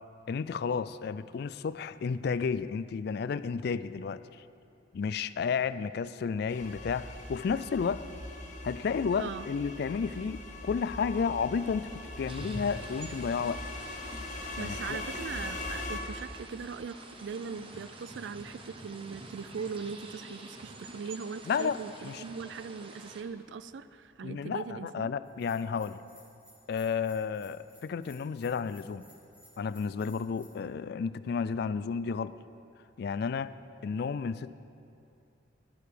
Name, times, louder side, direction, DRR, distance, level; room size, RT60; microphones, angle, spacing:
voice 1, 0.3-4.2 4.9-8.0 8.6-13.6 14.6-15.0 21.5-21.8 22.0-22.2 24.2-26.0 26.7-29.0 29.6-32.3 33.0-33.5 33.8-34.5, left 6 dB, 55° left, 15 dB, 0.3 m, -32 dB
sound 1, 6.5-16.0, left 2 dB, 40° left, 1.1 m, -41 dB
sound 2, 12.3-23.2, right 2 dB, 30° right, 0.8 m, -47 dB
voice 2, 14.6-25.1, right 5 dB, 70° right, 14 dB, 0.4 m, -40 dB
Bell, 25.2-30.5, equal, 5° right, 2.0 m, -59 dB
12.0 x 11.5 x 5.0 m, 2.6 s
head